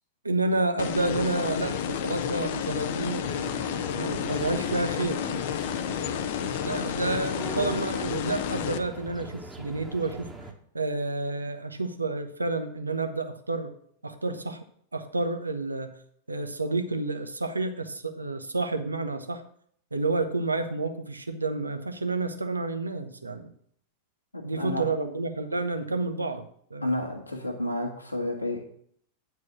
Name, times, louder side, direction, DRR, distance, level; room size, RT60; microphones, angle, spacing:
voice 1, 0.2-3.3 4.0-5.2 6.6-10.3 10.7-13.7 14.0-14.6 14.9-16.0 16.3-19.4 19.9-23.5 24.4-26.9, right 3 dB, 80° right, 8 dB, 0.9 m, -30 dB
sound 1, 0.8-8.8, left 8 dB, 55° left, 0.6 m, -31 dB
sound 2, 3.2-10.5, right 2 dB, 5° right, 1.3 m, -42 dB
voice 2, 24.3-24.9 26.8-28.7, left 1 dB, 85° left, 2 dB, 1.8 m, -31 dB
9.1 x 4.7 x 7.4 m, 0.64 s
figure-of-eight pair, 90°, 0 cm